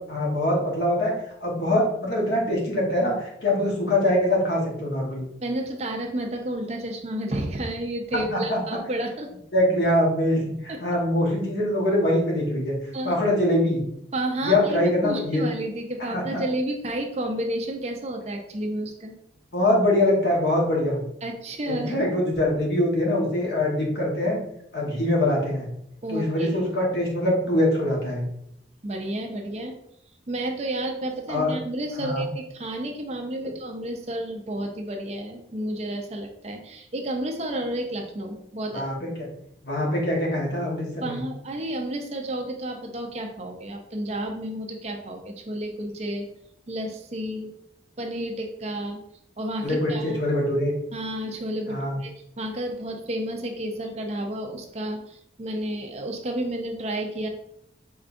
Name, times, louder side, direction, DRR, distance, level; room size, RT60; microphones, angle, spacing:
voice 1, 0.1-1.1 1.4-5.3 8.3-8.6 9.5-12.8 13.0-13.8 14.4-15.4 16.1-16.5 19.5-21.0 21.7-24.4 24.7-25.7 26.1-28.3 31.3-31.5 32.0-32.2 38.7-39.1 39.6-41.2 49.6-50.7 51.7-52.0, left 1 dB, 65° left, -2 dB, 1.2 m, -23 dB
voice 2, 5.4-9.3 10.7-10.8 12.9-13.1 14.1-19.1 21.2-21.9 26.0-26.5 28.8-29.8 30.3-38.8 41.0-46.3 46.7-47.5 48.0-49.0 49.4-50.2 50.9-52.1 52.4-57.3, right 1 dB, 35° right, 3 dB, 0.5 m, -31 dB
4.9 x 3.3 x 2.5 m, 0.75 s
head